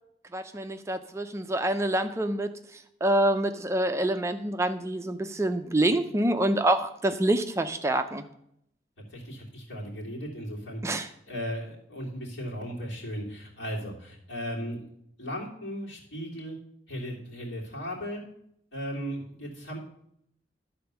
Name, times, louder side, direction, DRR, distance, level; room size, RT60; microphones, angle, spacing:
voice 1, 0.3-2.5 3.0-8.2 10.8-11.1, right 1 dB, 15° right, 8 dB, 0.4 m, -26 dB
voice 2, 9.1-14.9 15.2-16.6 16.9-18.2 18.7-19.8, equal, 80° left, -4 dB, 3.0 m, -36 dB
12.0 x 4.3 x 6.8 m, 0.74 s
head